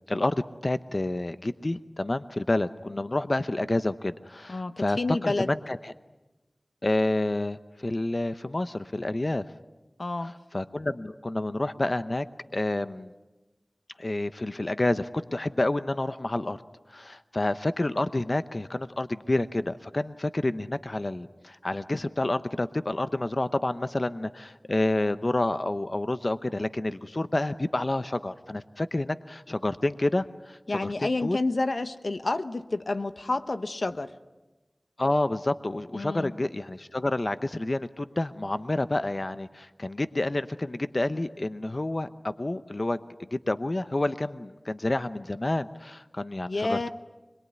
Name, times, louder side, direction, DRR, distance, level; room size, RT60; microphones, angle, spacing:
voice 1, 0.1-5.9 6.8-9.4 10.5-12.2 12.5-13.1 14.0-16.6 16.9-31.4 35.0-43.0 43.3-46.9, left 2 dB, 50° left, 11 dB, 0.8 m, -29 dB
voice 2, 4.5-5.5 10.0-10.4 30.7-34.1 35.9-36.3 46.5-46.9, left 2 dB, 85° left, 10 dB, 1.0 m, -29 dB
25.5 x 22.0 x 9.5 m, 1.1 s
wide cardioid pair, 40°, 0 cm